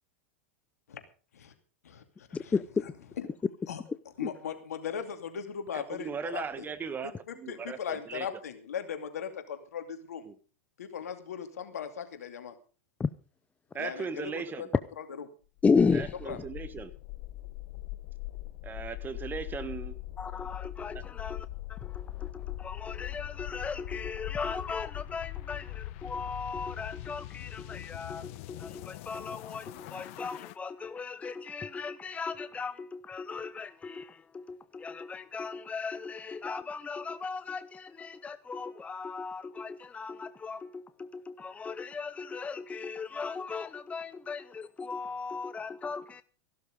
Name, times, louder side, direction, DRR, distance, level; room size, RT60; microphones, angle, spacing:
voice 1, 2.5-2.8 4.2-4.3 13.0-13.1 15.6-16.4 20.2-46.2, left 5 dB, 15° left, 0.6 m, -35 dB
voice 2, 4.2-6.7 7.0-10.3 10.8-12.5 13.8-14.7 16.3-16.4, left 8 dB, 85° left, 2.6 m, -38 dB
voice 3, 5.7-8.3 10.2-10.3 13.7-14.7 15.9-16.9 18.6-20.0 20.9-21.0, right 6 dB, 25° right, 1.6 m, -38 dB
sound 1, 15.6-30.5, left 17 dB, 60° left, 0.9 m, -41 dB
15.0 x 12.5 x 5.2 m
hypercardioid pair, 100°, 8 cm